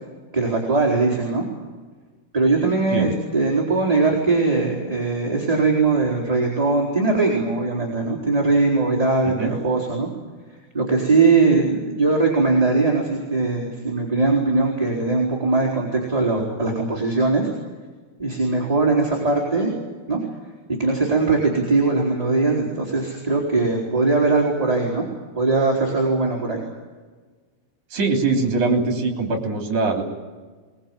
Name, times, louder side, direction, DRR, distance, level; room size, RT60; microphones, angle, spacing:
voice 1, 0.3-1.4 2.3-10.1 10.7-17.5 18.2-19.7 20.1-20.2 20.8-25.1 25.4-26.6, right 3 dB, 10° right, -2 dB, 3.7 m, -20 dB
voice 2, 27.9-30.0, right 3 dB, 50° right, 3 dB, 4.7 m, -22 dB
22.5 x 21.5 x 9.0 m, 1.4 s
omnidirectional pair, 4.4 m